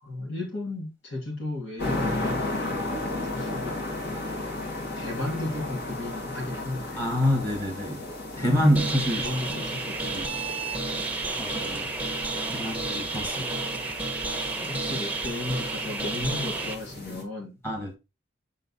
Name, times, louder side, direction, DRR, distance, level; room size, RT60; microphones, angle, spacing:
voice 1, 0.0-2.6 3.2-7.1 8.4-8.7 9.1-10.3 12.6-12.9 13.3-13.9 14.3-17.6, left 2 dB, 70° left, 2.4 m, -35 dB
sound 1, 1.8-17.2, left 2 dB, 55° left, 2.2 m, -35 dB
voice 2, 7.0-8.0 8.3-9.3 10.1-10.2 11.4-11.9 12.5-13.5 17.6-18.0, equal, 15° left, 1.6 m, -26 dB
sound 2, 8.7-16.7, right 3 dB, 10° right, 0.9 m, -31 dB
6.8 x 3.9 x 4.0 m
head